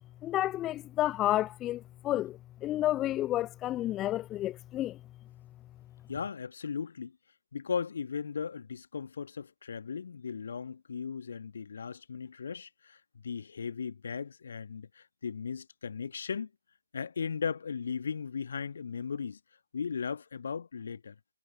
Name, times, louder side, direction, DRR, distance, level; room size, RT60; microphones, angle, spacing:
voice 1, 0.2-5.0, left 14 dB, 15° left, 0.4 m, -31 dB
voice 2, 6.1-7.2 7.5-16.5 16.9-19.4 19.7-21.2, left 6 dB, 45° left, 1.6 m, -37 dB
figure-of-eight pair, 140°, 0 cm